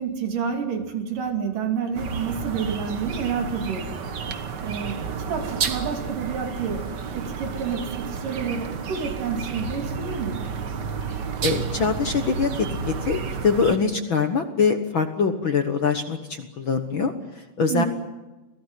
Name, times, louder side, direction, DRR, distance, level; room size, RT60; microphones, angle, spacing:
voice 1, 0.0-4.0 4.6-6.9 7.1-10.4 17.7-17.9, right 6 dB, 65° right, 4 dB, 4.3 m, -29 dB
sound 1, 1.9-13.8, right 5 dB, 85° right, 0.9 m, -31 dB
voice 2, 11.4-12.7 13.0-17.8, left 5 dB, 55° left, 6 dB, 1.4 m, -23 dB
28.0 x 18.0 x 9.1 m, 1.1 s
omnidirectional pair, 4.1 m